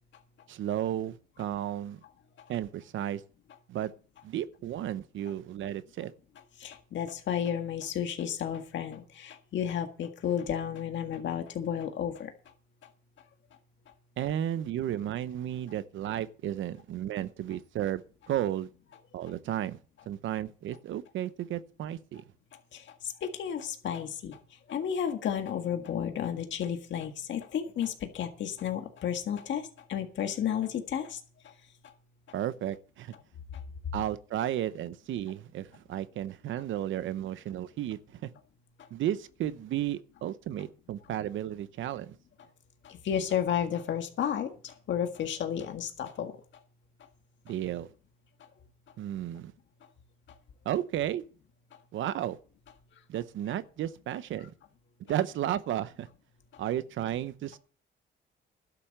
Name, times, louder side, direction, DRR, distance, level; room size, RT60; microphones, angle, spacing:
voice 1, 0.5-2.0 2.5-3.2 3.7-3.9 4.2-6.1 14.2-18.7 19.1-19.8 20.1-22.2 32.3-33.1 33.9-38.3 38.9-42.2 47.5-47.9 49.0-49.5 50.6-51.2 51.9-52.4 53.1-54.5 55.1-56.1 56.6-57.6, right 11 dB, 75° right, 0.9 m, -33 dB
voice 2, 6.6-12.3 22.7-22.8 23.2-24.4 24.7-29.6 29.9-31.2 42.8-46.3, left 9 dB, 70° left, 1.8 m, -32 dB
12.0 x 7.0 x 7.9 m
cardioid pair, 90°, 20 cm